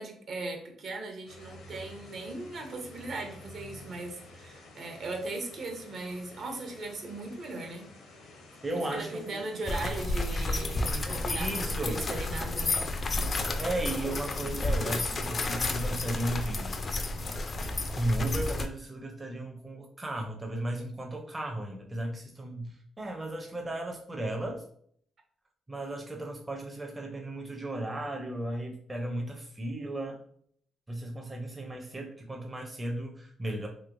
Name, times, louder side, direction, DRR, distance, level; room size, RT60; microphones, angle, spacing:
voice 1, 0.0-7.9 8.7-12.8, right 2 dB, 60° right, 3 dB, 0.8 m, -38 dB
sound 1, 1.3-18.1, left 2 dB, 80° left, 0.8 m, -51 dB
voice 2, 8.6-9.4 11.3-12.0 13.6-16.8 17.9-24.6 25.7-30.2 30.9-33.7, right 1 dB, 20° right, 1 dB, 0.6 m, -35 dB
sound 2, 9.7-18.7, left 2 dB, 40° left, 0.4 m, -31 dB
3.1 x 2.9 x 2.5 m, 0.63 s
cardioid pair, 90°, 0 cm